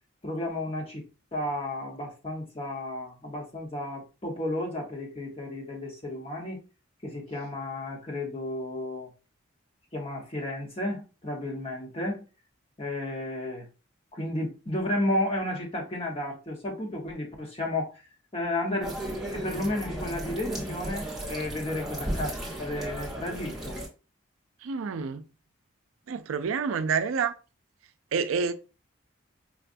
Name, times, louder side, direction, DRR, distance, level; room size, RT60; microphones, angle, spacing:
voice 1, 0.2-1.0 1.3-6.6 7.0-9.1 9.9-12.2 12.8-13.7 14.1-18.1 18.3-18.9 19.3-22.3 22.6-23.8, left 1 dB, 30° left, 1.0 m, -32 dB
sound 1, 18.8-23.9, right 1 dB, ahead, 0.9 m, -35 dB
voice 2, 24.6-25.2 26.1-27.3 28.1-28.5, right 5 dB, 90° right, 0.4 m, -28 dB
4.7 x 2.2 x 2.5 m
head